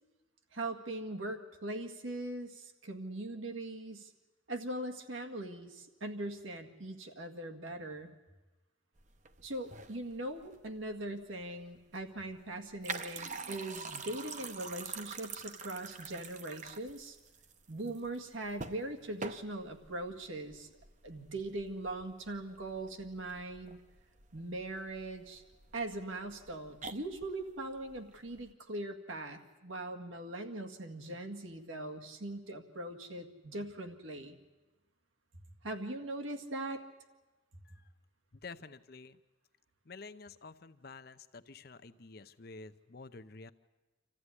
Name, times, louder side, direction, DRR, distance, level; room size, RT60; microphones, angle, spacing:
voice 1, 0.5-4.1 4.5-8.1 9.4-17.2 17.7-20.7 21.0-23.8 24.3-25.4 25.7-34.4 35.6-36.8, right 1 dB, 80° right, 4 dB, 1.9 m, -41 dB
sound 1, 9.0-28.5, right 4 dB, 35° right, 0.9 m, -47 dB
voice 2, 38.3-39.2 39.8-43.5, left 4 dB, 50° left, 11 dB, 0.7 m, -50 dB
26.0 x 14.5 x 9.8 m, 1.1 s
head